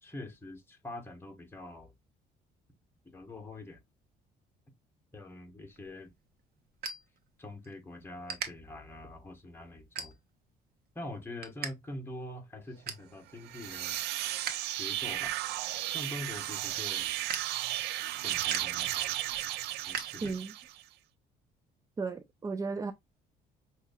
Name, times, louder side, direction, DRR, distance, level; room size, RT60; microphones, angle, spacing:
voice 1, 0.0-1.9 3.1-3.8 5.1-6.1 7.4-10.2 10.9-14.0 14.7-15.3 15.9-17.1 18.1-19.1 19.8-20.4, left 1 dB, 15° left, 1.4 m, -44 dB
sound 1, 5.7-7.8 8.0-8.5 9.1-9.3 9.8-10.5 10.9-11.7 12.0-12.1 12.5-13.1 13.6-14.5 14.9-20.7, right 6 dB, 60° right, 1.2 m, -42 dB
sound 2, 13.4-20.8, right 14 dB, 80° right, 0.4 m, -34 dB
voice 2, 20.2-20.5 22.0-22.9, right 4 dB, 20° right, 0.4 m, -34 dB
6.0 x 2.8 x 2.3 m
cardioid pair, 110°, 17 cm